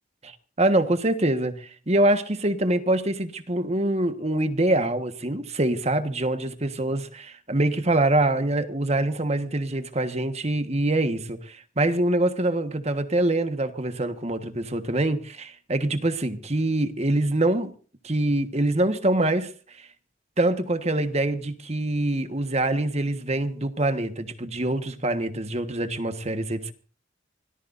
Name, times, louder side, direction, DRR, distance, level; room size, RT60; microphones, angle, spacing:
voice 1, 0.2-17.7 18.0-19.5 19.8-19.9 20.4-26.7, right 1 dB, 35° right, 9 dB, 1.4 m, -25 dB
25.0 x 18.0 x 2.6 m, 0.39 s
head